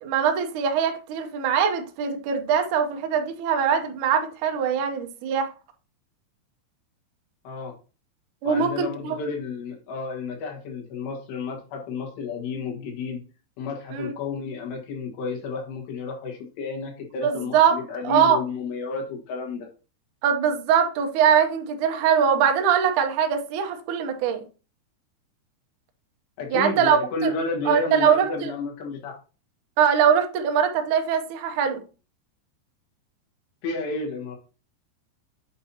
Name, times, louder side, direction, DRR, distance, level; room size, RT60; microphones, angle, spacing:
voice 1, 0.0-5.5 8.4-9.2 13.9-14.1 17.2-17.8 18.0-18.4 20.2-24.4 26.5-27.3 27.6-28.5 29.8-31.8, right 7 dB, 75° right, 1.8 m, -22 dB
voice 2, 8.5-13.2 13.6-19.7 26.4-29.2 33.6-34.4, left 4 dB, 90° left, 3.9 m, -31 dB
7.9 x 2.8 x 5.5 m
omnidirectional pair, 4.7 m